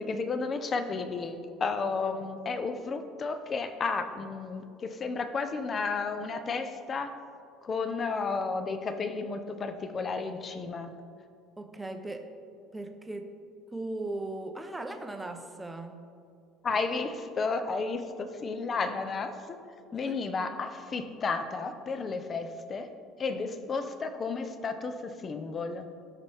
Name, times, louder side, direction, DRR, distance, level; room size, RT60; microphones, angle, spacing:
voice 1, 0.0-7.2 7.6-11.0 16.6-19.6 19.9-22.9 23.2-25.9, left 4 dB, 25° left, 8 dB, 0.7 m, -32 dB
voice 2, 11.6-12.3 12.7-13.4 13.7-16.0 19.9-20.3, right 2 dB, 10° right, 5 dB, 0.8 m, -38 dB
18.0 x 6.0 x 3.5 m, 2.3 s
cardioid pair, 150°, 0 cm